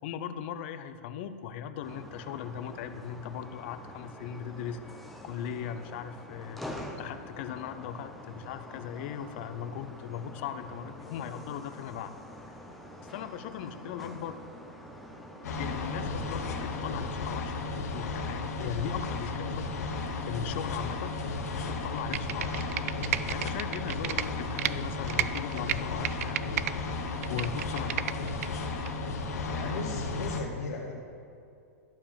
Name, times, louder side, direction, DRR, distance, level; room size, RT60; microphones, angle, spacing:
voice 1, 0.0-6.6 7.0-12.1 12.5-12.6 13.0-14.4 15.6-19.9 20.2-21.2 21.5-22.7 23.3-26.8 27.0-28.5, left 8 dB, 45° left, 11 dB, 0.6 m, -39 dB
sound 1, 1.8-17.1, left 1 dB, ahead, 0.7 m, -46 dB
sound 2, 15.4-30.4, left 3 dB, 85° left, 1.4 m, -34 dB
Computer keyboard, 22.0-24.7 25.1-26.7 27.1-28.5 28.9-29.0, right 12 dB, 65° right, 0.3 m, -32 dB
voice 2, 29.5-30.9, left 4 dB, 70° left, -1 dB, 1.1 m, -36 dB
11.5 x 4.8 x 7.2 m, 2.6 s
supercardioid pair, 160°, 9 cm